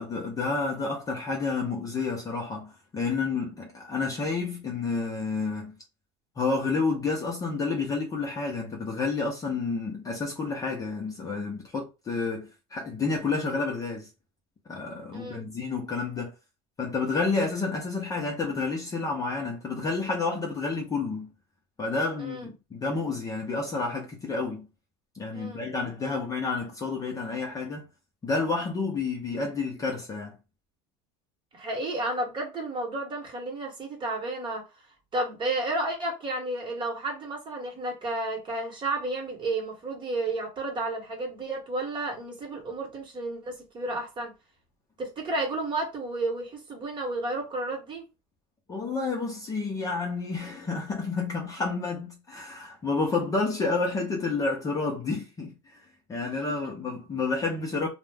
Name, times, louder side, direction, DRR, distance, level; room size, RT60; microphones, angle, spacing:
voice 1, 0.0-5.8 6.4-14.1 14.7-16.3 16.8-21.3 21.8-24.7 25.1-27.8 28.2-30.4 48.7-55.8 56.1-57.9, left 4 dB, 20° left, 0.5 m, -30 dB
voice 2, 15.1-15.5 22.2-22.5 25.3-25.7 31.5-34.6 35.1-44.3 45.0-48.1 56.2-56.7, right 2 dB, 25° right, 1.0 m, -32 dB
2.4 x 2.1 x 3.2 m
supercardioid pair, 140°, 18 cm